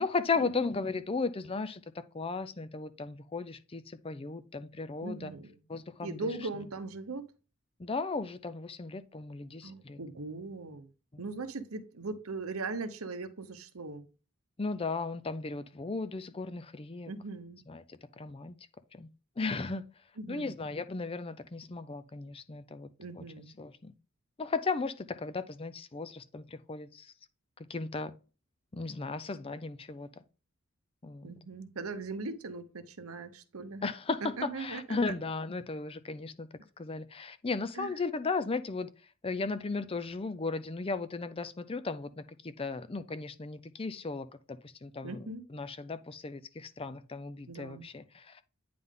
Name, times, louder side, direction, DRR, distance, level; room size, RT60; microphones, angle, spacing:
voice 1, 0.0-5.3 5.7-6.3 7.8-10.0 11.1-11.2 14.6-17.1 17.7-18.6 18.9-19.1 19.4-19.8 20.3-22.9 23.1-23.2 23.6-23.9 24.4-27.1 27.7-28.1 28.7-30.1 31.0-31.3 33.8-36.5 36.8-48.4, left 4 dB, 25° left, 0.5 m, -36 dB
voice 2, 5.0-5.6 6.0-7.3 9.6-10.9 11.2-14.0 17.1-17.6 20.2-20.5 23.0-23.5 31.2-33.9 34.4-35.1 37.8-37.9 45.0-45.4 47.5-47.9, right 3 dB, 90° right, 0.9 m, -39 dB
9.4 x 3.8 x 3.7 m
head